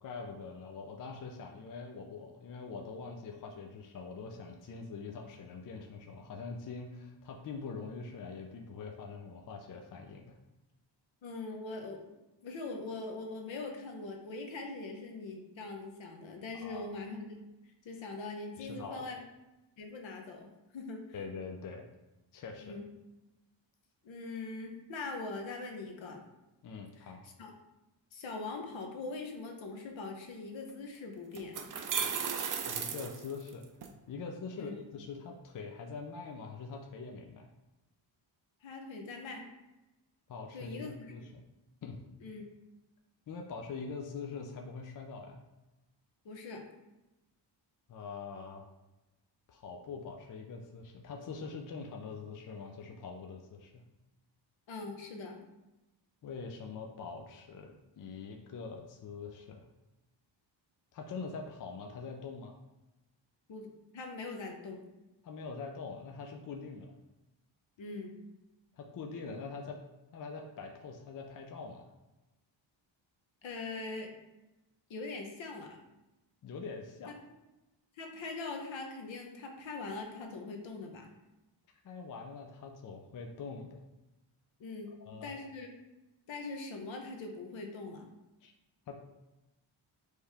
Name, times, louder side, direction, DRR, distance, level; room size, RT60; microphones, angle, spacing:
voice 1, 0.0-10.4 16.6-16.9 18.6-19.0 21.1-21.9 22.3-22.8 26.6-27.2 32.7-33.7 34.1-37.5 40.3-41.4 41.8-42.0 43.3-45.4 47.9-48.7 49.5-53.8 56.2-59.7 60.9-62.5 65.2-66.9 68.8-69.8 70.1-71.9 76.4-77.1 81.8-83.8 85.0-85.3 88.4-88.5 88.9-89.0, left 4 dB, 45° left, 2 dB, 0.4 m, -44 dB
voice 2, 11.2-12.1 12.4-17.4 17.8-19.2 19.8-21.0 22.6-22.8 24.0-26.3 27.0-27.1 27.4-27.5 28.1-31.5 34.6-34.7 38.6-39.5 40.5-41.1 42.2-42.4 46.2-46.6 54.7-55.5 63.5-64.9 67.8-68.2 73.4-74.2 74.9-75.8 78.0-81.1 84.6-84.9 85.2-85.7 86.3-88.1, left 3 dB, 70° left, 3 dB, 0.9 m, -42 dB
sound 1, 30.7-30.8 31.3-33.9, right 7 dB, 45° right, 0.5 m, -35 dB
4.5 x 3.2 x 3.4 m, 1.0 s
wide cardioid pair, 160°, 47 cm